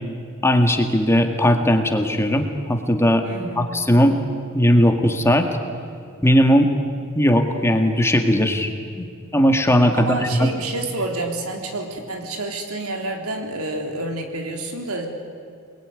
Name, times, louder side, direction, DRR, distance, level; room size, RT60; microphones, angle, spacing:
voice 1, 0.4-3.2 3.6-4.1 4.5-5.5 6.2-6.7 7.2-9.1 9.3-10.5, equal, 10° left, 5 dB, 1.9 m, -18 dB
voice 2, 3.2-3.8 9.9-15.1, right 2 dB, 90° right, 3 dB, 3.8 m, -29 dB
27.5 x 21.0 x 9.7 m, 2.3 s
head